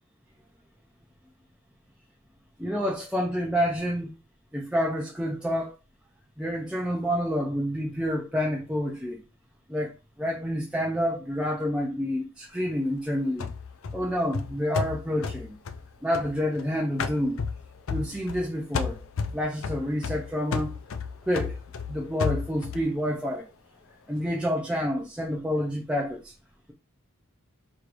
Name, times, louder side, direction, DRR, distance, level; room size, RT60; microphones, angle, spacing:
voice 1, 2.6-4.1 4.5-5.7 6.4-9.2 9.7-13.5 13.9-15.5 16.0-17.4 17.9-19.0 19.3-20.8 21.3-21.6 21.9-23.5 24.1-26.3, equal, 5° right, 0.5 m, -28 dB
sound 1, 13.4-16.6 17.0-18.5 18.7-22.9, left 5 dB, 70° left, 0.5 m, -32 dB
4.6 x 3.2 x 2.5 m
head